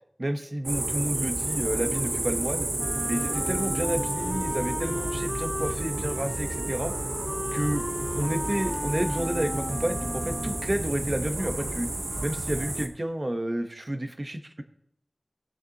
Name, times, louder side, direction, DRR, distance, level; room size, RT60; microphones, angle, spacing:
voice 1, 0.2-2.7 3.1-6.9 7.5-7.9 8.1-11.9 12.2-14.6, right 1 dB, 40° right, 7 dB, 0.9 m, -30 dB
sound 1, 0.7-12.9, right 2 dB, 65° right, 0.9 m, -31 dB
Wind instrument woodwind instrument, 2.8-10.9, left 1 dB, 20° left, 0.6 m, -36 dB
16.5 x 6.7 x 2.9 m, 0.70 s
wide cardioid pair, 55°, 0 cm